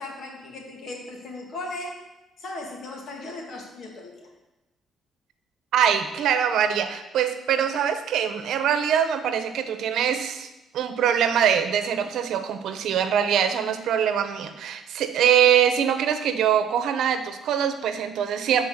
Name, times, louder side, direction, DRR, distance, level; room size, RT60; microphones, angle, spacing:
voice 1, 0.0-2.1 2.4-4.3, left 2 dB, 65° left, 0 dB, 2.5 m, -37 dB
voice 2, 5.7-10.5 10.7-18.6, right 8 dB, 80° right, 9 dB, 0.8 m, -23 dB
11.5 x 4.5 x 6.6 m, 0.99 s
cardioid pair, 90°, 0 cm